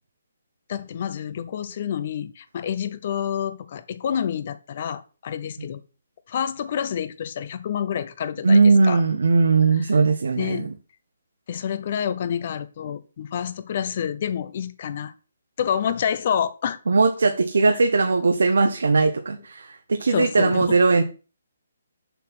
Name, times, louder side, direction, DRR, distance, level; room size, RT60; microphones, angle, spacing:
voice 1, 0.7-5.8 6.3-9.0 10.4-10.7 11.5-15.1 15.6-16.8 17.7-17.8 20.1-20.8, left 8 dB, 45° left, 0.8 m, -28 dB
voice 2, 8.4-10.7 16.9-21.0, right 4 dB, 80° right, 0.9 m, -19 dB
6.9 x 4.3 x 6.0 m
hypercardioid pair, 150°, 0 cm